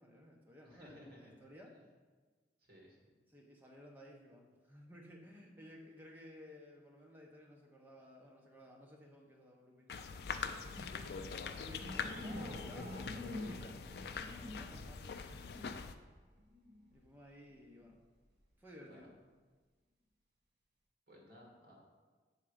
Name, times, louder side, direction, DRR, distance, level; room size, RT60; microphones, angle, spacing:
voice 1, 0.0-1.8 3.3-13.8 14.2-15.4 16.9-18.0 18.6-19.1, left 1 dB, 10° right, -1 dB, 0.8 m, -56 dB
voice 2, 0.6-1.3 2.6-3.0 18.8-19.1 21.1-21.8, equal, 60° right, -2 dB, 1.9 m, -57 dB
sound 1, 9.9-15.9, left 5 dB, 60° left, 0.3 m, -43 dB
sound 2, 11.8-17.0 17.6-17.9, left 1 dB, 80° right, 1.7 m, -48 dB
7.4 x 3.7 x 4.9 m, 1.4 s
head